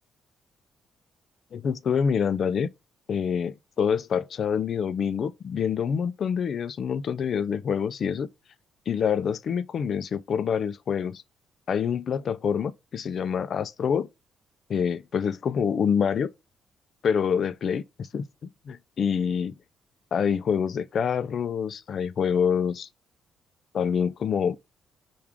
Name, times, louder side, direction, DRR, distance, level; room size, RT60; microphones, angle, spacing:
voice 1, 1.5-2.7 3.1-8.3 8.9-11.2 11.7-14.1 14.7-16.3 17.0-17.8 18.1-19.5 20.1-22.9 23.7-24.6, left 7 dB, 55° left, 0.3 m, -26 dB
4.6 x 2.3 x 3.5 m
cardioid pair, 90°, 0 cm